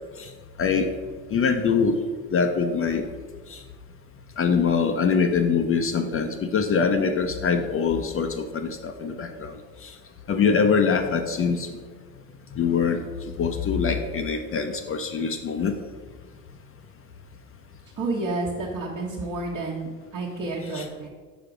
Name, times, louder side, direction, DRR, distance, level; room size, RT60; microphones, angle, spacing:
voice 1, 0.6-0.9 1.3-2.0 2.3-3.1 3.5-3.6 4.4-9.5 9.8-9.9 10.3-11.7 12.6-13.0 13.4-15.7 20.7-20.9, left 5 dB, 35° left, 5 dB, 0.6 m, -23 dB
voice 2, 18.0-21.1, right 2 dB, 45° right, -4 dB, 1.2 m, -30 dB
5.0 x 5.0 x 4.9 m, 1.5 s
hypercardioid pair, 65°, 40 cm